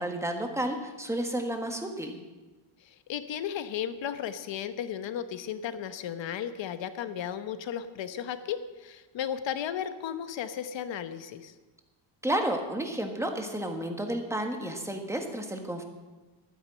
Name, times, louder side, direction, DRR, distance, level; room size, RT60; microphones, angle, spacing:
voice 1, 0.0-2.2 12.2-15.8, right 1 dB, 5° right, 4 dB, 1.4 m, -31 dB
voice 2, 2.8-11.5, left 9 dB, 70° left, 11 dB, 1.1 m, -35 dB
12.5 x 9.7 x 7.7 m, 1.2 s
cardioid pair, 155°, 46 cm